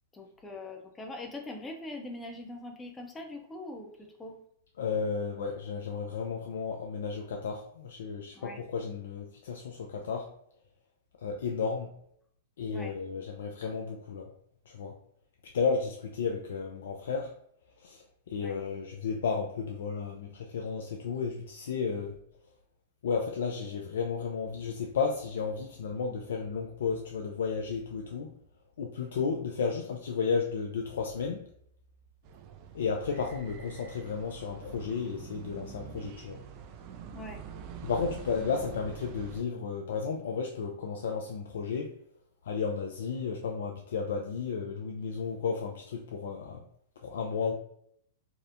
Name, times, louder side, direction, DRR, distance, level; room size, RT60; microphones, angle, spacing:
voice 1, 0.1-4.4 8.3-8.6 12.7-12.9 18.4-18.6 37.1-37.4, left 2 dB, 15° left, 2 dB, 0.5 m, -42 dB
voice 2, 4.8-10.3 11.2-11.9 12.6-14.3 14.7-15.0 15.5-17.3 17.8-22.2 23.0-28.3 28.8-31.5 32.7-36.4 37.8-41.9 42.4-46.6 47.0-47.5, left 5 dB, 70° left, 1 dB, 0.3 m, -33 dB
sound 1, 32.2-39.4, right 7 dB, 45° right, 0.3 m, -46 dB
2.7 x 2.0 x 2.4 m, 0.68 s
hypercardioid pair, 110°, 0 cm